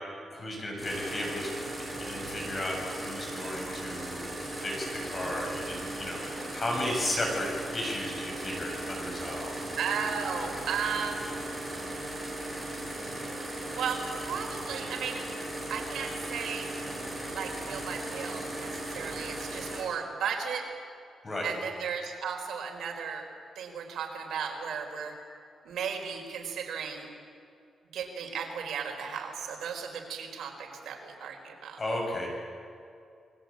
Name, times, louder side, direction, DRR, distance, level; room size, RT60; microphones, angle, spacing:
voice 1, 0.3-9.5 21.2-21.5 31.8-32.3, left 1 dB, 25° left, -1 dB, 7.2 m, -34 dB
sound 1, 0.8-19.8, right 1 dB, 5° right, 7.8 m, -37 dB
voice 2, 9.8-11.3 13.7-15.2 15.7-16.7 17.3-20.7 21.4-23.3 23.5-25.1 25.6-27.1 27.9-31.8, right 6 dB, 90° right, 2 dB, 4.7 m, -35 dB
28.5 x 21.5 x 8.8 m, 2.4 s
wide cardioid pair, 175°, 0 cm